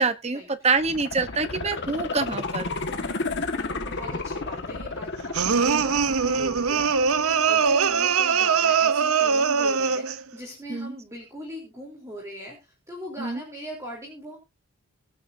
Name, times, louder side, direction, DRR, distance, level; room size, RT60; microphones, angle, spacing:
voice 1, 0.0-2.7 10.7-10.9 13.2-13.4, right 4 dB, 30° right, 11 dB, 1.0 m, -26 dB
sound 1, 0.7-7.7 8.1-8.2, left 3 dB, 50° left, 1.7 m, -32 dB
voice 2, 2.9-14.4, equal, 15° right, -1 dB, 3.6 m, -40 dB
sound 2, 5.3-10.2, right 6 dB, 75° right, 0.8 m, -22 dB
23.5 x 8.3 x 2.7 m, 0.26 s
head